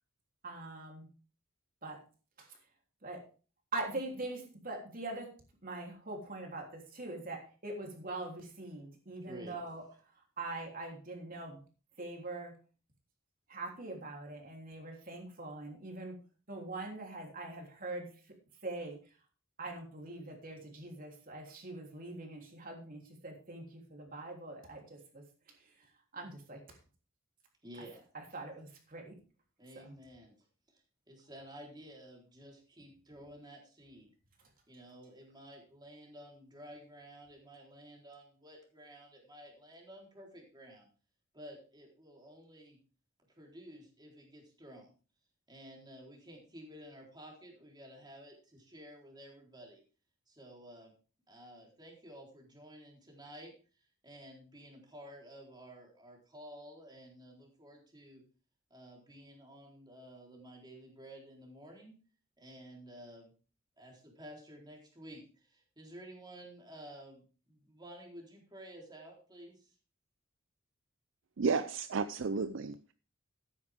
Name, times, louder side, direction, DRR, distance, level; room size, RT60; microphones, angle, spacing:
voice 1, 0.4-1.1 1.8-2.0 2.4-2.6 3.0-3.3 3.7-5.3 5.6-9.8 10.2-11.6 12.0-12.5 13.5-16.1 16.5-18.1 18.6-19.0 19.6-25.9 26.1-26.8 28.1-29.1 29.8-30.0, right 2 dB, 45° right, 1 dB, 3.4 m, -43 dB
voice 2, 27.6-28.0 29.6-30.4 30.7-34.1 34.7-40.9 41.3-42.8 43.4-44.9 45.5-49.8 50.3-50.9 51.3-53.5 54.0-58.2 58.7-61.9 62.4-63.3 63.8-69.7, equal, 20° right, -1 dB, 3.9 m, -52 dB
voice 3, 71.4-72.9, right 4 dB, 65° right, 12 dB, 0.5 m, -32 dB
13.5 x 9.8 x 3.6 m, 0.36 s
head